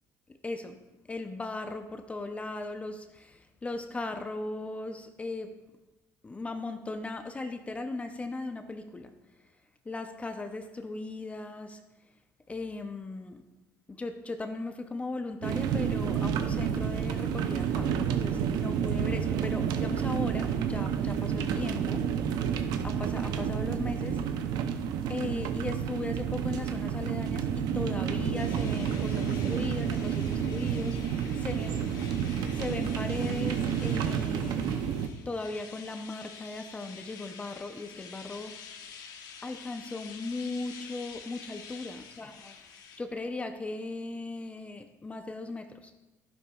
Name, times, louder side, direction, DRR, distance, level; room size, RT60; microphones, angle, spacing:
voice 1, 0.4-0.8 1.1-5.6 6.2-9.1 9.9-11.8 12.5-13.4 13.9-22.1 22.8-24.2 25.1-31.8 32.5-34.9 35.3-38.5 39.4-45.9, left 2 dB, 20° left, 7 dB, 0.7 m, -37 dB
sound 1, 15.4-35.1, right 8 dB, 75° right, 0.6 m, -30 dB
sound 2, 28.3-43.0, left 6 dB, 70° left, 1.1 m, -48 dB
11.5 x 10.5 x 2.4 m, 1.0 s
cardioid pair, 110°, 7 cm